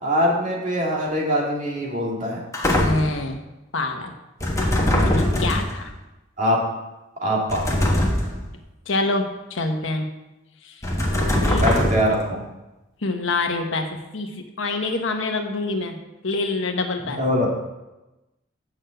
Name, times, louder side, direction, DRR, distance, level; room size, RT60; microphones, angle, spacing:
voice 1, 0.0-2.4 4.8-5.1 6.4-6.6 7.2-7.8 11.2-12.4 17.2-17.5, equal, 40° right, -3 dB, 2.2 m, -23 dB
sound 1, 2.5-3.2 4.4-5.8 7.5-8.5 10.8-12.2, left 1 dB, 15° left, 1.4 m, -21 dB
voice 2, 2.8-3.4 3.7-4.1 4.9-5.9 8.9-10.1 10.6-10.8 11.3-11.8 13.0-16.0 16.2-17.2, left 2 dB, 70° left, 5 dB, 1.1 m, -26 dB
6.8 x 6.3 x 7.7 m, 1.0 s
head